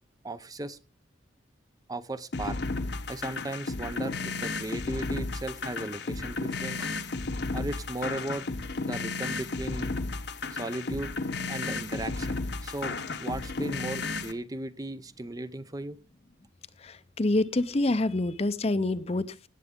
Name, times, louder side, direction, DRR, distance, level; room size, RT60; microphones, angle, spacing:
voice 1, 0.2-0.8 1.9-2.6 3.1-6.9 7.5-8.5 8.8-10.0 10.6-11.1 11.5-16.0, right 2 dB, 20° right, 13 dB, 0.5 m, -36 dB
sound 1, 2.3-14.3, left 3 dB, 55° left, 1.0 m, -33 dB
voice 2, 16.8-19.5, left 2 dB, 30° left, 14 dB, 0.6 m, -27 dB
18.0 x 8.2 x 3.6 m, 0.35 s
head